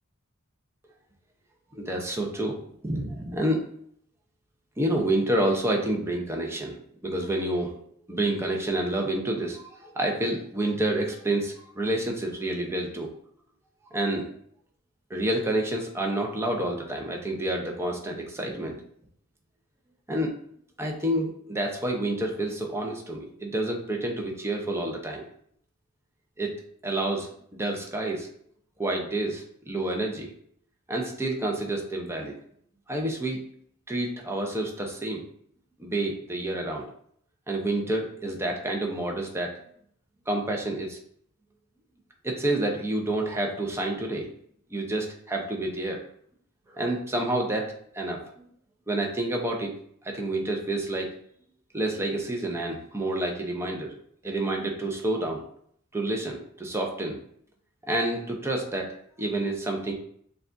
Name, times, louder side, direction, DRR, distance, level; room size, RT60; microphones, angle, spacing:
voice 1, 1.7-2.6 2.8-3.7 4.8-6.8 7.0-7.8 8.1-13.1 13.9-14.3 15.1-18.8 20.1-20.3 20.8-25.2 26.4-26.5 26.8-28.3 28.8-30.3 30.9-32.3 32.9-33.4 33.9-35.2 35.8-36.8 37.5-39.5 40.3-41.0 42.2-44.3 44.7-46.0 46.7-48.5 48.9-49.8 50.0-51.1 51.7-53.9 54.2-55.4 55.9-57.2 57.8-59.9, right 1 dB, 10° right, 0 dB, 0.6 m, -29 dB
6.3 x 2.3 x 2.5 m, 0.64 s
head